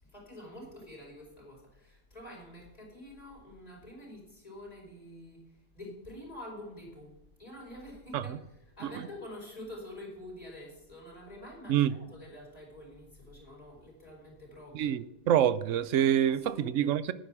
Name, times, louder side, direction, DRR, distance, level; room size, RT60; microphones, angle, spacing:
voice 1, 0.0-15.0 16.3-16.9, left 1 dB, 30° left, 5.0 m, -47 dB
voice 2, 14.7-17.1, right 10 dB, 80° right, 1.0 m, -26 dB
10.5 x 9.8 x 6.0 m
omnidirectional pair, 1.3 m